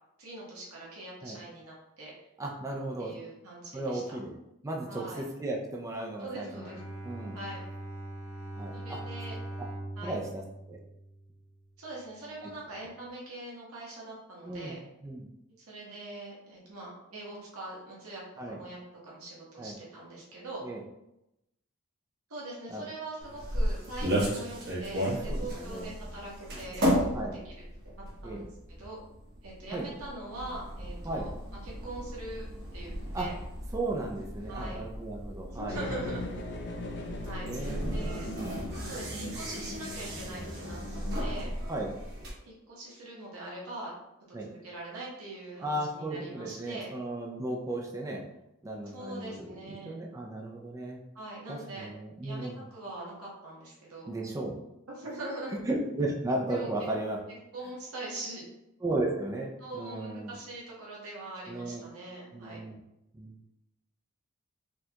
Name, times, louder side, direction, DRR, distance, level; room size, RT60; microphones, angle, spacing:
voice 1, 0.2-2.1 3.0-4.2 4.9-5.2 6.2-6.8 7.3-7.6 8.7-9.4 10.0-10.2 11.8-14.8 15.6-20.7 22.3-27.5 28.2-29.0 29.4-31.3 31.6-32.5 32.7-33.3 34.5-34.9 35.5-36.3 37.2-38.2 38.8-41.5 42.4-43.9 44.4-46.9 48.9-49.9 51.1-51.9 52.2-54.1 54.9-55.6 56.5-56.7 57.5-58.5 59.6-62.6, right 2 dB, 80° right, -4 dB, 1.0 m, -42 dB
voice 2, 2.4-3.1 3.7-4.3 4.6-6.7 7.0-7.4 8.6-9.0 10.0-10.4 10.7-10.8 14.5-14.7 15.0-15.3 18.4-18.6 19.6-19.8 20.6-20.8 22.7-22.8 25.3-25.9 27.1-27.3 28.2-28.5 29.7-29.9 31.0-31.3 33.1-33.3 33.7-35.8 37.4-38.2 41.7-41.9 44.3-44.5 45.6-48.2 48.6-51.0 51.5-52.6 54.1-54.5 55.7-57.2 58.8-60.3 61.5-61.8 62.3-62.8 63.1-63.3, right 2 dB, 15° right, -1 dB, 0.4 m, -35 dB
Bowed string instrument, 6.4-11.7, right 1 dB, 30° left, 1.1 m, -42 dB
sound 1, 23.2-42.3, equal, 50° right, 1.0 m, -35 dB
sound 2, 35.7-41.3, left 1 dB, 55° left, 0.6 m, -40 dB
4.4 x 2.3 x 2.8 m, 0.88 s
head